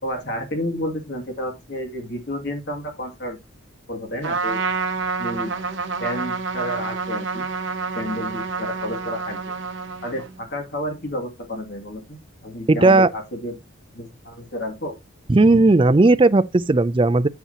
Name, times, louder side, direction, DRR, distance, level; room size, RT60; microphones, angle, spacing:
voice 1, 0.0-3.4 3.9-4.6 5.2-5.5 6.0-7.5 7.9-9.4 10.0-13.6 13.9-14.9, equal, 50° left, 2.4 m, -30 dB
Trumpet, 4.2-10.4, right 4 dB, 60° right, 1.1 m, -28 dB
voice 2, 12.7-13.1 15.3-17.3, right 2 dB, 25° right, 0.4 m, -15 dB
8.3 x 8.3 x 2.8 m
head